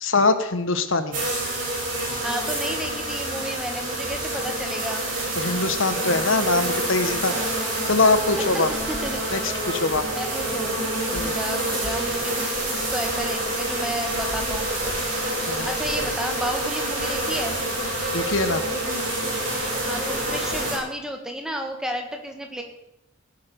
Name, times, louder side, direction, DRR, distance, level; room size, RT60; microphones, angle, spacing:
voice 1, 0.0-1.2 5.4-7.3 7.9-8.7 9.3-10.0 11.1-11.3 15.5-15.7 18.1-18.6, left 3 dB, 65° left, 10 dB, 1.1 m, -22 dB
sound 1, 1.1-20.8, right 1 dB, 40° right, 7.2 m, -27 dB
voice 2, 2.2-5.1 8.4-9.2 10.1-10.8 11.1-14.9 15.6-17.6 19.9-22.6, equal, 5° right, 3 dB, 1.8 m, -32 dB
18.5 x 8.4 x 6.7 m, 0.84 s
head